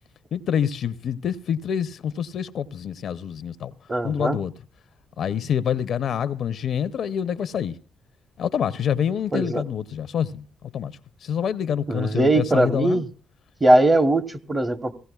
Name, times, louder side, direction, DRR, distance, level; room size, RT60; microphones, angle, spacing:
voice 1, 0.3-3.7 4.0-4.5 5.2-7.8 8.4-10.4 10.7-13.0, left 8 dB, 65° left, 0.6 m, -26 dB
voice 2, 3.9-4.4 9.3-9.6 11.9-13.1 13.6-14.9, right 1 dB, 25° right, 0.9 m, -20 dB
21.5 x 16.5 x 2.3 m
cardioid pair, 90°, 0 cm